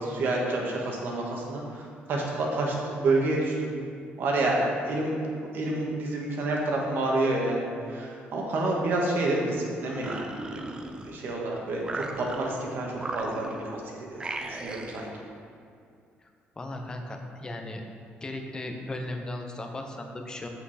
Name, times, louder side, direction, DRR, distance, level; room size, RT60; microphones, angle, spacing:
voice 1, 0.0-3.7 4.2-5.1 5.4-10.7 11.0-15.1, right 2 dB, 60° right, -1 dB, 1.5 m, -29 dB
sound 1, 9.8-11.4 11.8-12.6 13.0-13.8 14.2-15.1, right 2 dB, 20° right, 0.5 m, -37 dB
voice 2, 16.6-17.8 18.2-20.5, left 1 dB, 20° left, 3 dB, 0.7 m, -36 dB
7.8 x 6.1 x 4.2 m, 2.3 s
cardioid pair, 160°, 4 cm